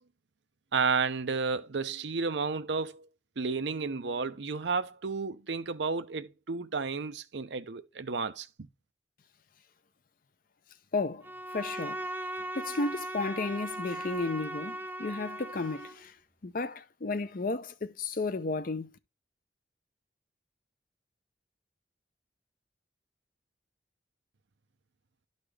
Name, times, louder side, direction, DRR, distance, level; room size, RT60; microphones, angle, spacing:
voice 1, 0.7-3.1 3.4-8.7, right 4 dB, 80° right, 0.7 m, -32 dB
voice 2, 10.9-11.3 11.5-12.0 12.5-16.1 16.4-18.9, left 3 dB, 50° left, 0.6 m, -33 dB
Bowed string instrument, 11.2-16.0, right 1 dB, 10° right, 0.5 m, -38 dB
12.0 x 4.0 x 3.3 m
head